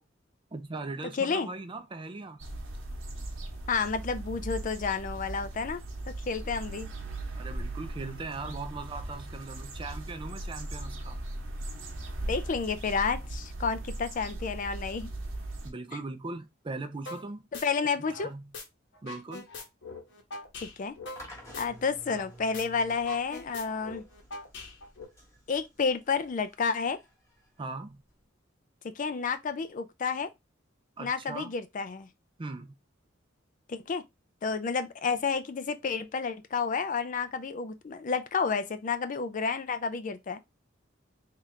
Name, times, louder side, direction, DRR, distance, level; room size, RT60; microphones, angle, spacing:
voice 1, 0.5-2.4 7.4-11.2 15.6-17.5 18.2-18.5 19.0-19.5 27.6-28.0 31.0-31.5 32.4-32.8, right 3 dB, 25° right, 0.4 m, -39 dB
voice 2, 1.1-1.5 3.7-6.9 12.2-15.1 17.6-18.3 20.6-20.9 21.6-24.0 25.5-27.0 28.8-30.3 31.0-32.1 33.7-34.0 34.4-40.4, left 5 dB, 40° left, 0.4 m, -30 dB
sound 1, 2.4-15.7, right 1 dB, 90° right, 1.1 m, -38 dB
sound 2, 17.1-17.2 17.5-18.6 18.9-22.3 22.5-22.6 22.9-25.0, left 3 dB, 65° left, 1.0 m, -42 dB
sound 3, 21.2-28.2, equal, 15° left, 1.2 m, -52 dB
3.7 x 2.8 x 3.1 m
head